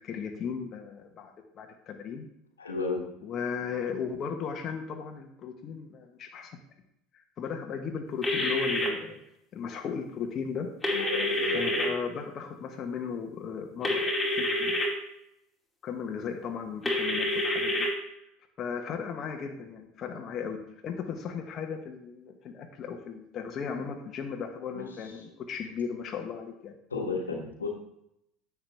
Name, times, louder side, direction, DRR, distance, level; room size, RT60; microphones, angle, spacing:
voice 1, 0.0-2.3 3.2-6.6 7.1-9.2 9.5-10.7 10.9-11.1 11.5-14.0 14.4-14.8 15.8-17.9 18.6-20.6 20.8-26.8, left 6 dB, 45° left, 3 dB, 1.1 m, -36 dB
voice 2, 2.6-3.1 10.9-11.8 24.7-24.9 26.9-27.7, left 4 dB, 90° left, 1 dB, 1.5 m, -33 dB
sound 1, 8.2-8.9 10.8-11.9 13.8-14.9 16.9-17.9, left 1 dB, 15° left, 2.6 m, -27 dB
10.0 x 7.2 x 3.3 m, 0.79 s
hypercardioid pair, 70°, 0 cm